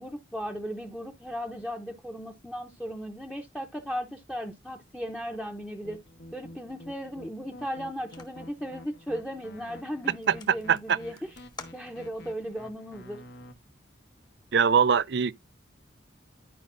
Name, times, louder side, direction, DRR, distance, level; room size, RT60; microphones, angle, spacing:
voice 1, 0.0-6.0 6.3-11.4 11.7-13.2, equal, 5° left, 0.8 m, -36 dB
sound 1, 5.8-13.5, left 1 dB, 60° left, 1.3 m, -49 dB
sound 2, 8.1-8.6 9.2-9.4 9.7-9.8 10.1-12.3, left 3 dB, 20° left, 1.2 m, -49 dB
voice 2, 10.3-11.0 14.5-15.3, right 6 dB, 60° right, 0.4 m, -23 dB
12.0 x 5.2 x 2.6 m
head